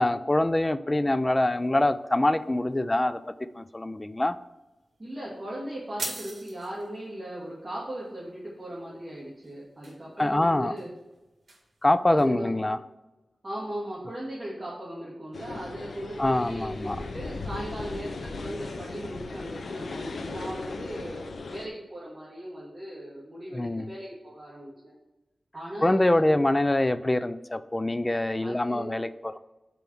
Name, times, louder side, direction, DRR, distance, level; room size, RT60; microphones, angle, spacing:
voice 1, 0.0-3.2 3.6-4.4 10.2-10.7 11.8-12.8 16.2-17.0 23.5-23.9 25.8-29.4, left 1 dB, 20° left, 13 dB, 0.4 m, -24 dB
sound 1, 1.5-12.2, right 2 dB, 60° right, 1.9 m, -46 dB
voice 2, 5.0-10.9 12.1-12.6 13.4-21.2 21.5-24.9 25.5-26.5 28.4-28.8, right 1 dB, 30° right, -7 dB, 2.0 m, -38 dB
sound 2, 15.3-21.7, left 3 dB, 80° left, 0.7 m, -37 dB
5.4 x 4.5 x 6.1 m, 1.1 s
wide cardioid pair, 70°, 0 cm